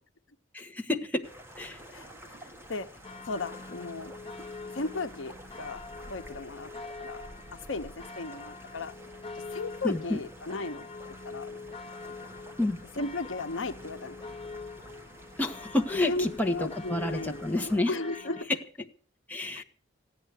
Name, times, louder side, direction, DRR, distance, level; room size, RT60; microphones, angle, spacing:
voice 1, 0.5-1.2 1.6-1.8 9.8-10.2 12.6-12.8 15.4-17.9 18.3-18.4 19.3-19.6, left 2 dB, 10° left, 1.4 m, -29 dB
sound 1, 1.2-17.8, equal, 15° right, 1.8 m, -50 dB
voice 2, 1.9-2.9 3.2-4.1 4.7-6.7 7.0-7.2 7.5-9.0 9.3-10.9 11.2-11.5 13.0-14.2 16.1-18.6 19.5-19.6, left 3 dB, 85° left, 0.9 m, -36 dB
sound 2, 3.0-18.4, left 3 dB, 30° left, 1.1 m, -44 dB
16.0 x 9.4 x 8.2 m
head